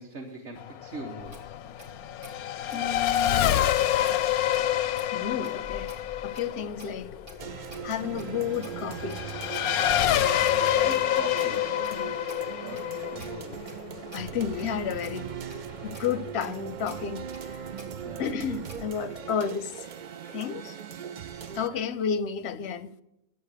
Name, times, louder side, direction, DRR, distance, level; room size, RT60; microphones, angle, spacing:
voice 1, 0.0-1.4 10.7-11.6 12.6-13.6 14.3-14.4 18.0-18.2 21.7-21.8, right 2 dB, 50° right, 1.4 m, -42 dB
Race car auto racing / Accelerating revving vroom, 0.6-14.6, left 11 dB, 85° left, 1.1 m, -27 dB
Clock, 1.2-19.0, equal, 70° right, 3.3 m, -50 dB
voice 2, 2.7-3.6 5.1-5.9 6.2-7.1 7.6-9.2 11.9-12.2 14.1-15.3 15.8-17.7 18.2-19.9 20.3-20.8 21.5-22.9, left 7 dB, 60° left, 0.7 m, -32 dB
sound 1, 7.4-21.7, right 8 dB, 90° right, 0.4 m, -39 dB
11.0 x 7.9 x 6.6 m
omnidirectional pair, 1.5 m